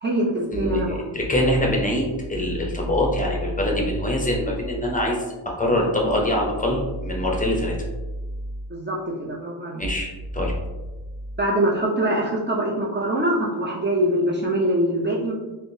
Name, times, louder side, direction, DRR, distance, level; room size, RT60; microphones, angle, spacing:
voice 1, 0.0-1.1 8.7-9.8 11.4-15.3, right 1 dB, 25° right, -4 dB, 0.5 m, -23 dB
voice 2, 0.5-7.8 9.8-10.5, left 1 dB, 20° left, -1 dB, 0.7 m, -24 dB
3.5 x 2.6 x 2.6 m, 1.2 s
cardioid pair, 85°, 45 cm